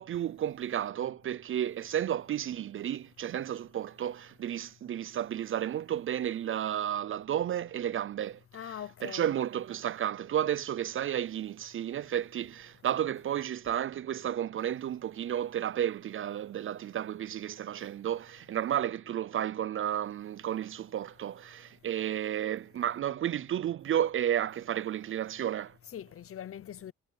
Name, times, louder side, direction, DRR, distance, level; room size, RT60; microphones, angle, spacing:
voice 1, 0.0-8.7 9.0-25.7, right 10 dB, 45° right, 0.4 m, -32 dB
voice 2, 8.5-9.3 25.9-26.9, left 10 dB, 50° left, 0.8 m, -42 dB
cardioid pair, 90°, 30 cm